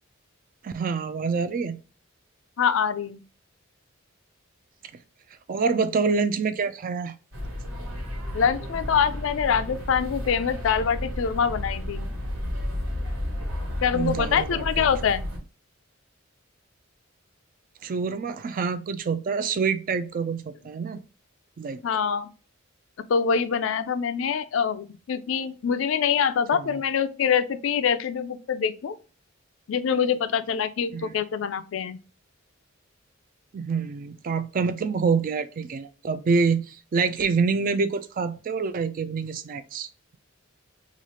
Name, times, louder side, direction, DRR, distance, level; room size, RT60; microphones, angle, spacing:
voice 1, 0.6-1.8 5.5-7.2 13.9-14.9 17.8-21.0 21.6-21.8 26.5-26.8 30.9-31.1 33.5-39.9, right 5 dB, 45° right, 0.3 m, -26 dB
voice 2, 2.6-3.2 8.3-12.1 13.8-15.2 21.8-22.3 23.1-28.9 29.7-32.0, left 7 dB, 70° left, 0.4 m, -25 dB
sound 1, 7.3-15.4, left 1 dB, 85° right, 1.7 m, -32 dB
3.1 x 2.4 x 4.1 m
head